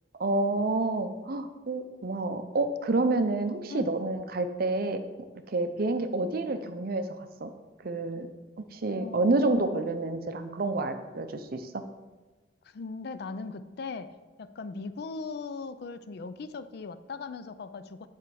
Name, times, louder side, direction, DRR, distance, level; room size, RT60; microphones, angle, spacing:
voice 1, 0.2-5.0 5.5-7.5 7.8-8.3 8.7-11.7, right 2 dB, 50° right, 8 dB, 0.6 m, -28 dB
voice 2, 8.9-9.8 12.6-14.1 14.4-18.1, left 4 dB, 55° left, 12 dB, 0.4 m, -39 dB
8.2 x 4.4 x 4.8 m, 1.2 s
head